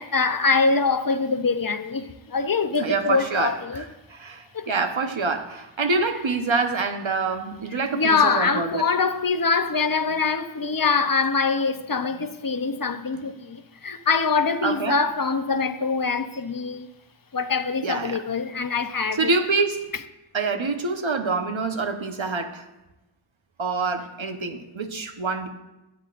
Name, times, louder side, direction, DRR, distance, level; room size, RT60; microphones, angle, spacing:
voice 1, 0.0-3.8 4.5-4.7 7.9-16.9 17.3-19.3, left 4 dB, 45° left, 0.7 m, -24 dB
voice 2, 2.8-8.9 13.1-13.2 14.6-15.0 17.8-18.2 19.1-19.9 20.3-22.7 23.6-25.5, right 4 dB, 70° right, 1.1 m, -26 dB
22.5 x 8.1 x 2.5 m
wide cardioid pair, 50°, 49 cm